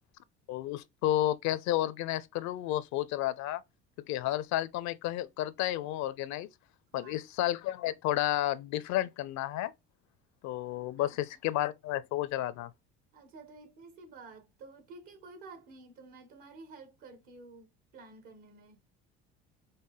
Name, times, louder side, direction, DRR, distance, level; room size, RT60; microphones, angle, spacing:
voice 1, 0.5-3.6 4.1-6.5 6.9-9.7 10.4-12.7, left 14 dB, 60° left, 0.6 m, -31 dB
voice 2, 6.9-7.3 11.0-11.2 13.1-18.8, right 3 dB, 70° right, 1.6 m, -51 dB
5.5 x 2.1 x 3.2 m
hypercardioid pair, 65°, 32 cm